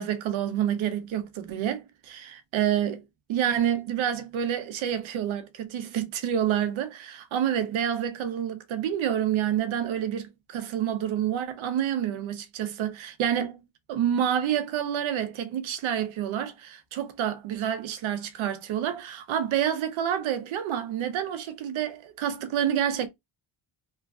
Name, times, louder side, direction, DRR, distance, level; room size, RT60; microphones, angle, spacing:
voice 1, 0.0-2.2 2.5-3.0 3.3-13.6 13.9-23.1, right 10 dB, 75° right, 0.7 m, -28 dB
3.0 x 2.4 x 2.3 m
wide cardioid pair, 160°, 48 cm